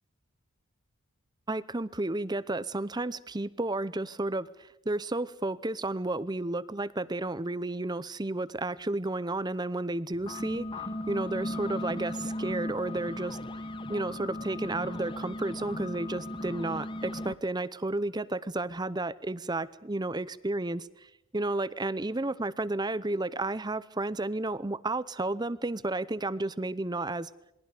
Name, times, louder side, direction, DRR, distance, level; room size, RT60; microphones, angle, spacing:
voice 1, 1.5-10.7 11.1-13.4 13.9-27.3, right 2 dB, 20° right, 17 dB, 0.7 m, -32 dB
sound 1, 10.1-17.4, left 1 dB, 25° left, 1.1 m, -37 dB
28.0 x 22.0 x 5.0 m, 0.88 s
head